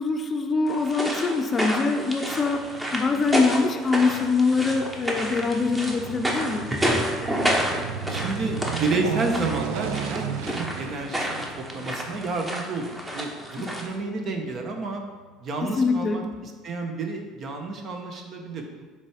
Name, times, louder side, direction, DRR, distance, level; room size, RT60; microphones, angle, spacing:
voice 1, 0.0-6.7 13.6-13.7 15.6-16.2, left 4 dB, 30° left, 4 dB, 0.6 m, -24 dB
sound 1, 0.7-13.9, equal, 15° right, 1.0 m, -30 dB
Aircraft, 2.3-14.8 15.2-15.3, right 8 dB, 85° right, 0.4 m, -36 dB
voice 2, 8.1-15.0 15.4-18.9, right 3 dB, 45° right, 3 dB, 1.0 m, -30 dB
7.3 x 3.4 x 5.0 m, 1.4 s
supercardioid pair, 110°, 0 cm